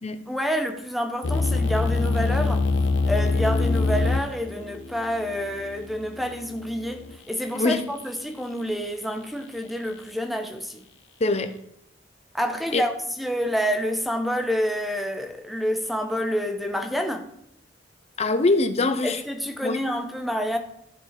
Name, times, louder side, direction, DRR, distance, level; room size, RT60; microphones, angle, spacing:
voice 1, 0.3-2.7 3.1-10.8 12.3-17.3 19.0-20.6, equal, ahead, 0.7 m, -28 dB
sound 1, 1.2-7.2, left 3 dB, 75° left, 0.8 m, -25 dB
voice 2, 11.2-11.5 12.7-12.8 18.2-19.2 19.6-19.8, left 3 dB, 35° left, 0.7 m, -23 dB
13.0 x 4.5 x 4.0 m
head